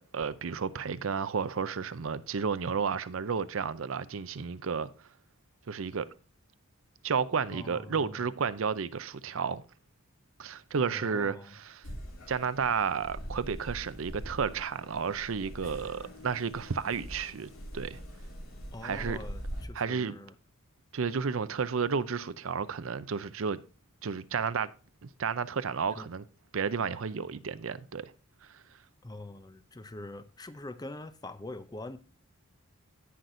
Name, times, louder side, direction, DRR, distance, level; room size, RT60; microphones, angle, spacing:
voice 1, 0.0-4.9 5.7-6.1 7.0-9.6 10.4-11.8 12.3-18.0 18.8-19.2 19.7-20.1 20.9-23.6 24.0-24.7 25.0-26.2 26.5-28.1 28.4-28.6, right 6 dB, 65° right, 0.6 m, -32 dB
voice 2, 7.5-8.3 10.9-11.5 18.7-20.3 25.9-26.1 29.0-32.0, left 2 dB, 20° left, 0.6 m, -44 dB
sound 1, 11.8-19.6, equal, 85° left, 2.7 m, -43 dB
17.0 x 5.9 x 2.6 m
head